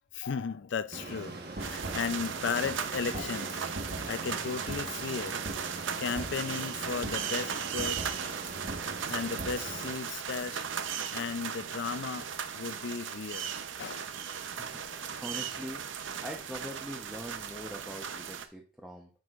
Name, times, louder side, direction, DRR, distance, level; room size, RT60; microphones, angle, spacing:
voice 1, 0.1-8.1 9.1-10.7 11.1-12.3 12.5-13.5 13.8-14.2, left 5 dB, 65° left, 0.4 m, -36 dB
sound 1, 0.9-9.9, right 2 dB, 55° right, 1.2 m, -40 dB
sound 2, 1.6-18.5, right 7 dB, 70° right, 0.6 m, -37 dB
voice 2, 14.4-15.8 16.2-19.1, equal, ahead, 0.7 m, -43 dB
9.2 x 6.2 x 2.4 m
head